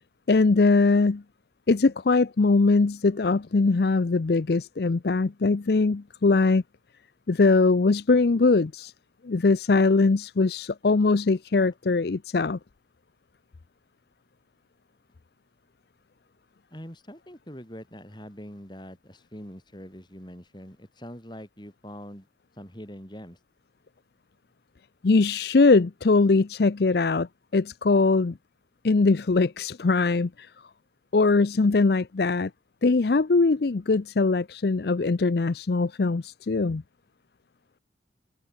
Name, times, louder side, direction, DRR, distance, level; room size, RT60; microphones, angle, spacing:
voice 1, 0.3-1.2 1.7-6.6 7.3-8.9 9.2-12.6 25.0-27.3 27.5-28.4 28.8-30.5 31.1-32.5 32.8-36.8, left 3 dB, 55° left, 0.5 m, -21 dB
voice 2, 16.7-22.3 22.6-23.4, equal, 25° left, 6.4 m, -43 dB
head